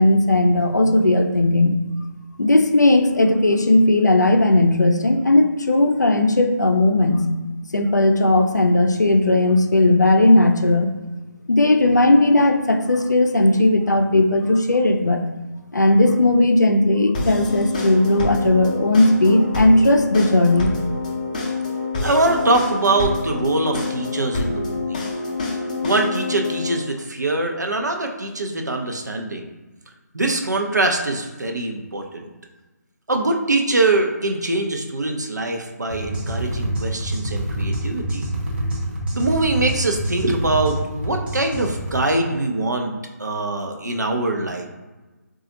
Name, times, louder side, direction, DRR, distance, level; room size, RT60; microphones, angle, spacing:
voice 1, 0.0-1.7 2.4-7.3 7.7-10.9 11.5-15.2 15.7-20.7, left 2 dB, 75° left, 5 dB, 0.5 m, -16 dB
sound 1, 17.1-26.7, left 3 dB, 25° left, 0.5 m, -27 dB
voice 2, 22.0-25.1 25.8-29.5 30.1-32.3 33.1-38.3 39.1-42.9 43.2-44.7, right 2 dB, 70° right, 2 dB, 0.6 m, -23 dB
sound 2, 35.9-42.0, right 1 dB, 30° right, 0.8 m, -26 dB
3.9 x 2.4 x 2.8 m, 1.2 s
figure-of-eight pair, 150°, 10 cm